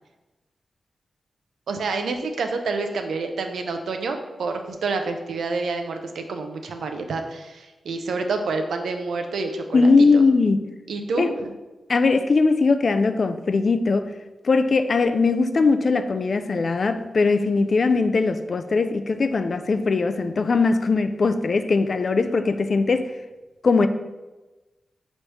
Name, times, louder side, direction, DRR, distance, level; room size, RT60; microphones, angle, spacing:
voice 1, 1.7-10.2 10.9-11.5, right 3 dB, 85° right, 5 dB, 0.4 m, -28 dB
voice 2, 9.7-10.6 11.2-11.3 11.9-14.1 14.4-23.1 23.6-23.9, left 4 dB, 60° left, 9 dB, 0.3 m, -20 dB
5.2 x 3.1 x 3.2 m, 1.1 s
cardioid pair, 50°, 0 cm